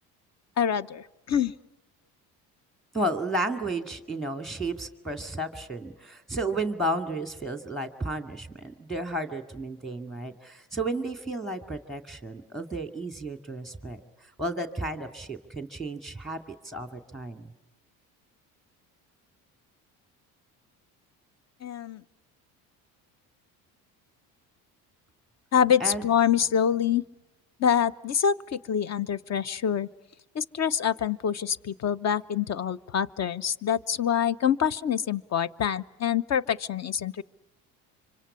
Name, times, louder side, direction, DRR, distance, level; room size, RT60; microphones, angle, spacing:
voice 1, 0.6-1.5 21.6-22.0 25.5-27.0 27.6-29.9 30.3-37.2, left 8 dB, 40° left, 18 dB, 1.0 m, -26 dB
voice 2, 2.9-17.5 25.8-26.0, right 1 dB, ahead, 7 dB, 2.3 m, -33 dB
26.0 x 25.5 x 8.6 m, 1.0 s
supercardioid pair, 80°, 40 cm